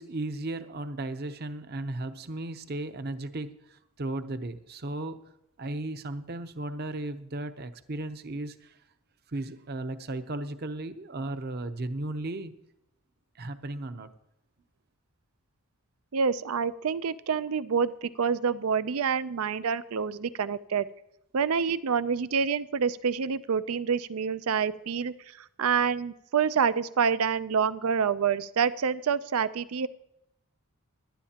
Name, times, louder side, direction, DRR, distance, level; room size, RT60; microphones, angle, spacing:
voice 1, 0.0-5.2 5.6-8.7 9.3-12.5 13.4-14.1, right 2 dB, 45° right, 10 dB, 0.7 m, -35 dB
voice 2, 16.1-20.9 21.3-25.1 25.6-29.9, right 6 dB, 85° right, 15 dB, 0.5 m, -27 dB
17.5 x 11.5 x 2.9 m, 0.84 s
head